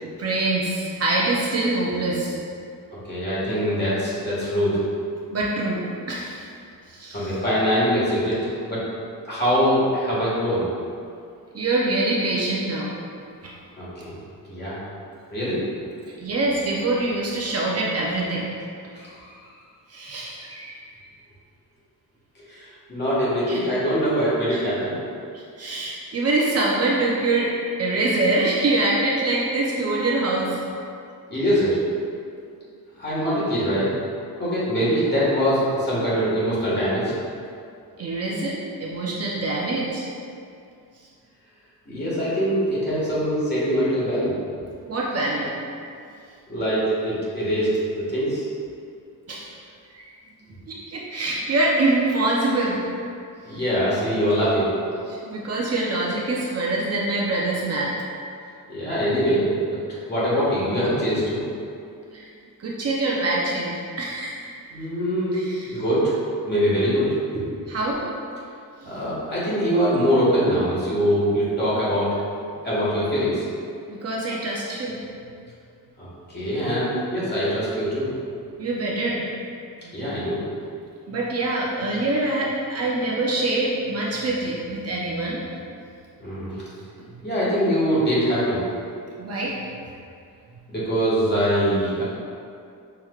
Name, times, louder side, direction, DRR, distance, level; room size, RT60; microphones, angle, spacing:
voice 1, 0.0-2.4 5.3-6.4 6.9-7.3 11.5-12.9 13.4-13.5 16.2-18.5 19.9-20.8 23.5-23.7 24.5-24.6 25.6-27.5 27.8-30.6 38.0-40.1 44.9-45.5 49.3-49.5 49.9-50.1 50.7-52.8 53.5-53.6 55.1-57.9 62.1-62.3 62.6-64.4 65.3-65.7 67.7-68.0 68.8-68.9 73.9-75.0 78.6-79.2 79.8-80.0 81.1-85.4 89.2-89.6, right 2 dB, 45° right, -4 dB, 0.6 m, -24 dB
voice 2, 3.0-4.8 7.1-8.8 9.3-10.7 13.8-14.2 14.5-14.8 15.3-15.6 18.9-19.5 22.5-24.9 31.3-31.8 33.0-33.9 34.4-37.1 41.9-44.3 46.5-48.4 53.5-54.7 58.7-59.5 60.1-61.4 64.7-65.4 65.7-66.1 66.5-67.4 68.8-72.2 72.6-73.4 76.0-78.1 79.9-80.4 86.2-86.6 87.2-88.6 90.7-92.0, equal, 30° left, -9 dB, 1.5 m, -23 dB
5.7 x 3.2 x 2.3 m, 2.4 s
cardioid pair, 130°, 35 cm